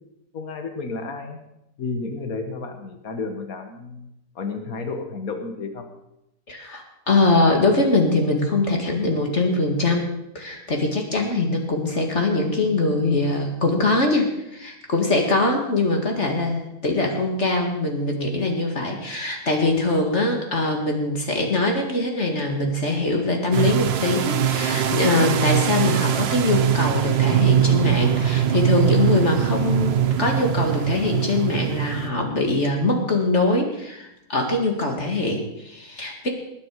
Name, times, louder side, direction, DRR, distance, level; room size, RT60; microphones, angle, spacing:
voice 1, 0.3-1.4 1.8-4.1 4.4-5.9, left 3 dB, 60° left, 5 dB, 2.0 m, -31 dB
voice 2, 6.5-10.1 10.3-36.3, left 2 dB, 45° left, 2 dB, 2.3 m, -22 dB
sound 1, 23.5-32.1, right 9 dB, 55° right, 0.8 m, -22 dB
19.5 x 9.6 x 4.8 m, 0.87 s
omnidirectional pair, 1.7 m